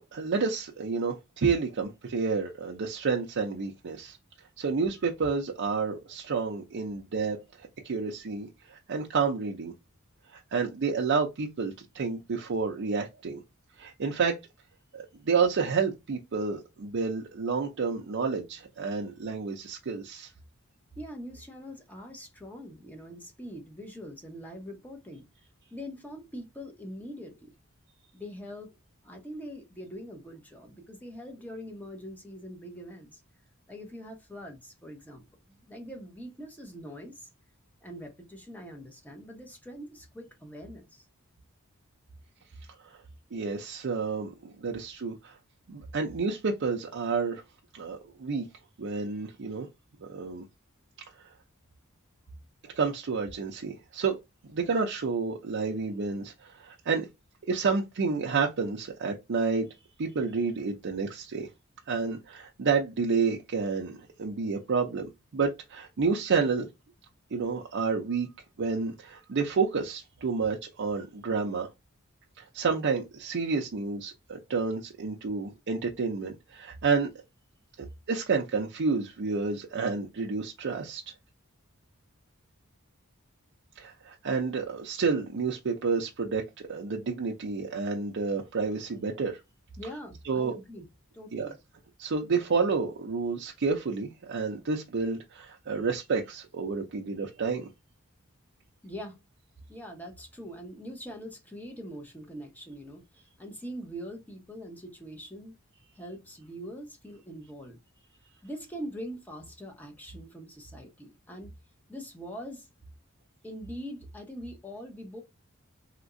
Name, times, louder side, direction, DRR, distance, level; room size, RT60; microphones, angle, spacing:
voice 1, 0.0-4.2 4.6-9.7 10.3-13.4 13.8-14.4 14.9-20.3 42.8-43.0 43.3-45.4 45.7-47.4 47.7-48.5 48.8-49.7 50.0-50.5 52.6-54.2 54.5-57.1 57.5-59.7 60.0-61.5 61.9-66.7 67.3-68.3 68.6-71.7 72.4-77.1 77.8-81.0 83.8-89.4 90.3-90.6 91.3-91.5 92.0-97.7, right 4 dB, 55° right, 0.5 m, -30 dB
voice 2, 21.0-25.3 25.7-27.5 28.1-28.8 29.0-33.2 33.7-37.3 37.8-41.1 89.8-90.9 91.1-91.6 98.8-99.2 99.7-105.6 105.9-107.8 108.4-111.5 111.9-112.7 113.4-115.2, equal, 10° left, 0.9 m, -43 dB
3.4 x 2.9 x 2.5 m
head